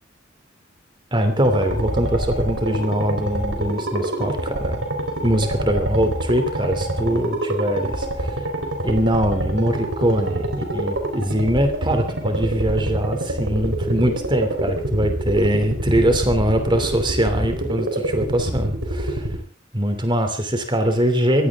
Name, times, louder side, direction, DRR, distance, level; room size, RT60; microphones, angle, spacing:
voice 1, 1.1-4.8 5.2-8.3 8.8-10.5 10.7-19.2 19.7-21.5, right 1 dB, 25° right, 7 dB, 3.0 m, -22 dB
sound 1, 1.4-19.4, right 1 dB, 70° right, 4.3 m, -26 dB
21.0 x 16.0 x 3.7 m, 0.38 s
head